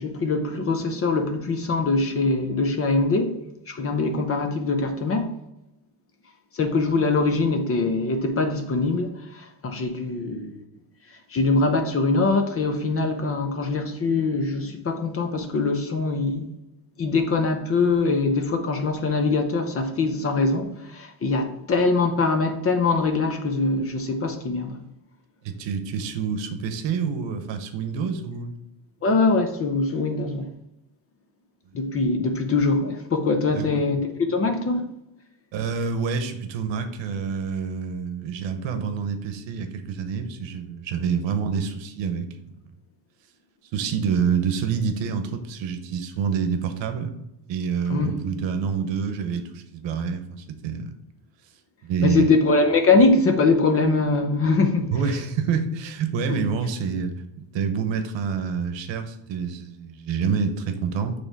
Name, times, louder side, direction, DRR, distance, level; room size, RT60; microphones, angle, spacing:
voice 1, 0.0-3.4 3.7-5.3 6.5-10.6 11.3-16.5 17.0-24.8 29.0-30.5 31.7-34.9 47.9-48.1 52.0-54.9 56.3-56.5, left 3 dB, 30° left, 0.7 m, -23 dB
voice 2, 25.6-28.5 33.5-33.6 35.5-42.3 43.7-47.1 47.5-50.9 51.8-52.3 54.9-57.1 57.5-61.1, right 6 dB, 75° right, 1.0 m, -27 dB
6.5 x 3.2 x 4.6 m
cardioid pair, 165°, 45 cm